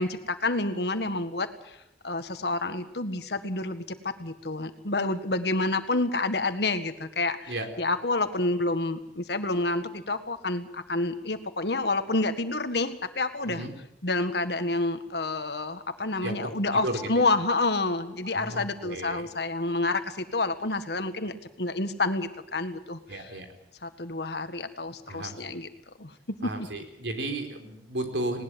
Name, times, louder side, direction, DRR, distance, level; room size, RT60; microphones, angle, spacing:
voice 1, 0.0-1.8 2.0-13.6 14.0-23.3 23.8-25.7 26.0-26.7, left 2 dB, 70° left, 9 dB, 1.7 m, -29 dB
voice 2, 16.2-16.5 16.8-17.2 18.2-19.3 23.1-23.5 25.1-25.6 26.4-28.4, right 1 dB, 90° right, 6 dB, 3.9 m, -34 dB
20.0 x 19.0 x 7.7 m, 0.87 s
head